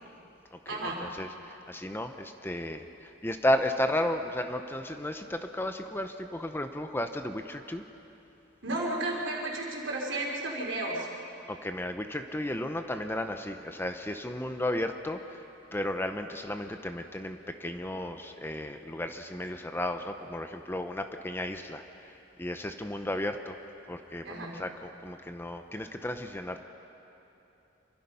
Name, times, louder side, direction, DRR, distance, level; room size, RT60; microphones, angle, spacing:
voice 1, 0.7-1.0 8.6-11.1 24.2-24.6, right 2 dB, 70° right, -2 dB, 4.2 m, -33 dB
voice 2, 1.7-2.8 3.2-7.8 11.5-15.2 15.7-21.8 22.4-23.6 23.9-26.6, left 1 dB, 10° left, 7 dB, 0.8 m, -33 dB
26.5 x 24.0 x 5.6 m, 3.0 s
head